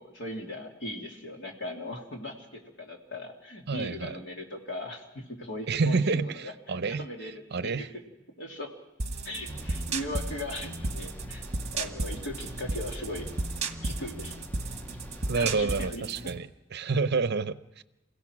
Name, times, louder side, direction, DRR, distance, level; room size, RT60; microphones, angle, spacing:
voice 1, 0.0-7.9 8.4-8.7 9.2-11.4 11.7-13.3 13.8-14.5 15.3-16.3, left 1 dB, 65° left, 1 dB, 2.8 m, -39 dB
voice 2, 3.7-4.2 5.7-7.1 7.5-7.9 15.3-17.8, right 4 dB, 55° right, 13 dB, 0.7 m, -29 dB
sound 1, 9.0-16.4, right 3 dB, 35° right, 1.2 m, -34 dB
sound 2, 9.5-15.9, equal, 10° left, 0.6 m, -44 dB
27.5 x 16.0 x 6.1 m, 1.0 s
head